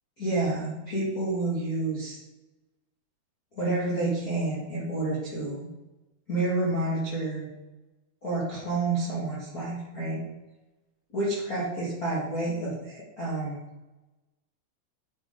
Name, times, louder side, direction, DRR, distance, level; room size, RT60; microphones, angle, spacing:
voice 1, 0.2-2.2 3.5-5.7 6.3-7.5 8.2-10.2 11.1-13.6, right 2 dB, 35° left, -7 dB, 1.6 m, -29 dB
9.3 x 5.8 x 4.0 m, 1.0 s
omnidirectional pair, 4.9 m